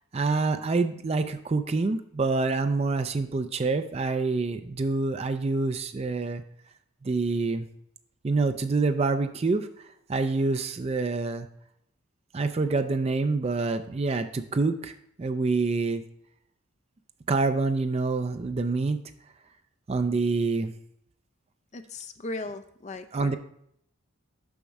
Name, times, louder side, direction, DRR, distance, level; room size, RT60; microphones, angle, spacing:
voice 1, 0.1-6.4 7.0-7.7 8.2-9.7 10.1-11.5 12.3-16.0 17.3-19.0 19.9-20.7 23.1-23.3, right 3 dB, 30° right, 8 dB, 0.3 m, -26 dB
voice 2, 21.7-23.3, left 2 dB, 30° left, 8 dB, 0.5 m, -37 dB
7.1 x 5.2 x 4.7 m, 0.72 s
head